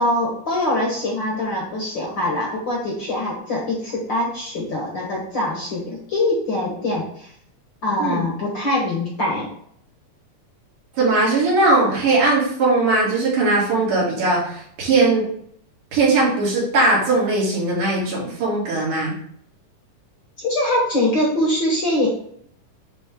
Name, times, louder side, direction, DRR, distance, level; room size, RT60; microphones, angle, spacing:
voice 1, 0.0-7.3 7.8-9.5 20.4-22.1, left 1 dB, 50° left, -3 dB, 1.5 m, -23 dB
voice 2, 11.0-15.3 15.9-19.2, right 2 dB, 75° right, -5 dB, 4.0 m, -19 dB
9.6 x 3.7 x 3.7 m, 0.65 s
omnidirectional pair, 3.6 m